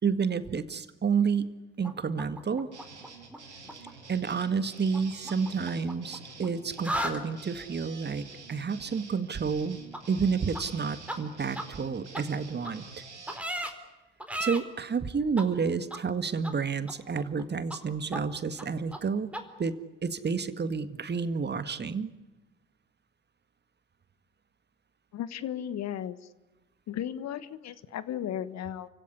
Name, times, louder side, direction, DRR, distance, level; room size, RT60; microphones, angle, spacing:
voice 1, 0.0-2.7 4.1-9.8 10.1-12.8 14.4-19.8 20.0-22.1, right 5 dB, 30° right, 12 dB, 1.9 m, -30 dB
sound 1, 1.8-3.4 3.6-3.9 4.9-6.5 6.7-7.2 9.9-10.0 10.5-10.6 11.1-11.2 11.5-11.6 12.1-12.2 12.6-12.7 13.3-13.7 14.2-14.6 15.4-15.5 15.9-16.0 16.4-16.5 16.9-17.4 17.7-17.8 18.1-18.2 18.6-18.7 18.9-19.0 19.3-19.4, right 1 dB, 5° right, 4.3 m, -34 dB
sound 2, 2.7-13.4, right 4 dB, 90° right, 2.8 m, -48 dB
voice 2, 25.1-26.3 26.9-28.9, left 10 dB, 50° left, 15 dB, 1.4 m, -35 dB
29.5 x 16.5 x 9.8 m, 1.1 s
figure-of-eight pair, 55°, 34 cm